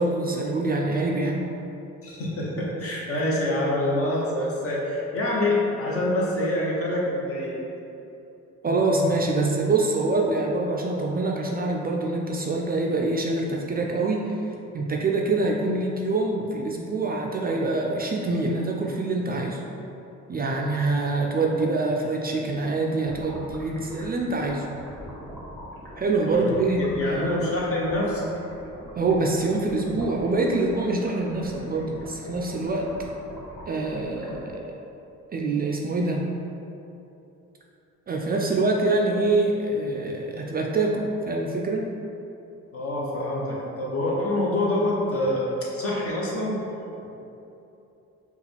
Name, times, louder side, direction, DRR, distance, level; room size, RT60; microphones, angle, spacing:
voice 1, 0.0-1.5 8.6-14.4 14.7-19.6 20.3-24.6 26.0-27.4 28.9-32.9 33.7-34.7 35.3-36.3 38.1-41.8, right 2 dB, 30° right, 0 dB, 0.4 m, -25 dB
voice 2, 2.0-7.6 26.3-28.3 42.7-46.6, left 1 dB, 50° left, -4 dB, 1.0 m, -26 dB
sound 1, 23.0-34.5, equal, 10° left, 0.8 m, -43 dB
4.8 x 2.4 x 3.3 m, 2.8 s
cardioid pair, 90°, 30 cm